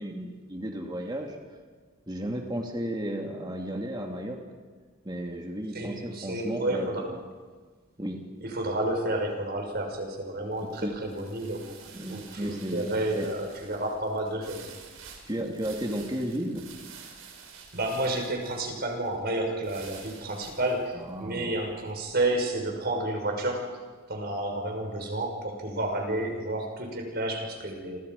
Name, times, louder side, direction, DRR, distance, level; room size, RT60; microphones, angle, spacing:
voice 1, 0.0-1.4 2.1-4.4 5.0-7.2 8.0-8.2 10.6-11.0 11.9-13.3 15.3-16.6 21.0-21.5, right 1 dB, 20° right, 1 dB, 2.6 m, -34 dB
voice 2, 5.7-7.1 8.4-11.8 12.1-14.7 17.7-23.8 24.1-28.0, right 1 dB, 50° right, 3 dB, 5.9 m, -30 dB
sound 1, 9.7-22.8, right 6 dB, 80° right, 5.5 m, -50 dB
29.5 x 26.0 x 5.5 m, 1.4 s
head